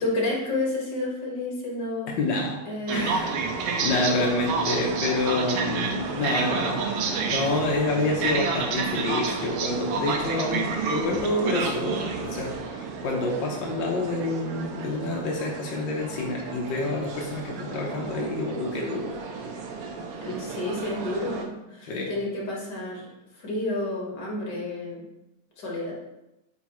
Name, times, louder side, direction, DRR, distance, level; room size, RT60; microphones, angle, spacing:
voice 1, 0.0-2.1 2.7-3.1 20.2-23.1 23.4-25.0 25.6-25.9, left 2 dB, 40° left, -3 dB, 2.0 m, -30 dB
voice 2, 2.1-2.6 2.9-3.4 3.8-19.1 21.8-22.1, left 2 dB, 75° left, -1 dB, 1.0 m, -28 dB
sound 1, 2.9-21.5, right 4 dB, 75° right, 1.4 m, -30 dB
8.3 x 4.7 x 3.1 m, 0.94 s
omnidirectional pair, 3.3 m